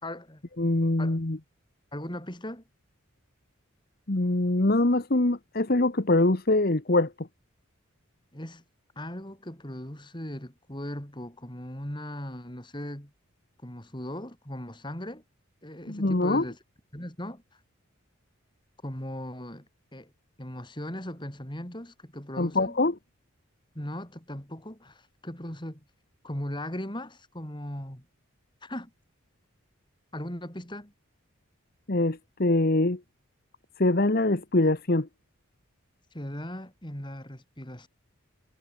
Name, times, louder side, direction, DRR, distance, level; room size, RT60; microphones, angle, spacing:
voice 1, 0.0-0.4 1.0-1.2 1.9-2.6 8.3-8.6 9.0-13.1 13.6-15.2 15.6-16.6 16.9-17.4 18.8-20.1 20.4-22.8 23.7-25.8 26.2-28.0 28.6-28.9 30.1-30.9 36.1-37.9, left 1 dB, 20° left, 3.9 m, -38 dB
voice 2, 0.6-1.4 4.1-7.1 15.9-16.4 22.4-22.9 31.9-33.0 33.8-35.1, left 2 dB, 45° left, 1.2 m, -23 dB
head